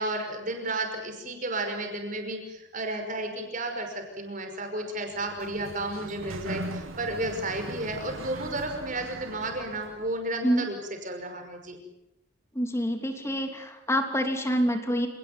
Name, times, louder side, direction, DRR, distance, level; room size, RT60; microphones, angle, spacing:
voice 1, 0.0-10.8 11.0-11.8, right 2 dB, 35° right, 5 dB, 5.7 m, -32 dB
Sliding door, 5.1-10.3, right 1 dB, 70° right, 1.8 m, -40 dB
voice 2, 12.5-15.1, equal, 15° left, 5 dB, 3.0 m, -26 dB
28.5 x 19.0 x 9.5 m, 0.92 s
head